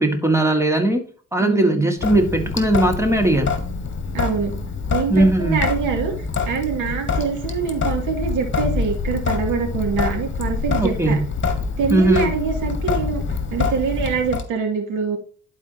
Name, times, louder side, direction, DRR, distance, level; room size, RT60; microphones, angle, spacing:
voice 1, 0.0-3.6 5.1-5.6 10.8-11.3 11.9-12.3, right 1 dB, 10° right, 5 dB, 2.1 m, -19 dB
voice 2, 1.4-1.9 4.1-4.5 4.9-6.1 6.4-11.2 11.8-13.2 13.5-15.2, right 6 dB, 85° right, 3 dB, 2.5 m, -24 dB
Sink (filling or washing) / Drip, 2.0-14.4, left 4 dB, 40° left, 1.7 m, -25 dB
11.5 x 4.8 x 2.9 m, 0.41 s
cardioid pair, 90°, 30 cm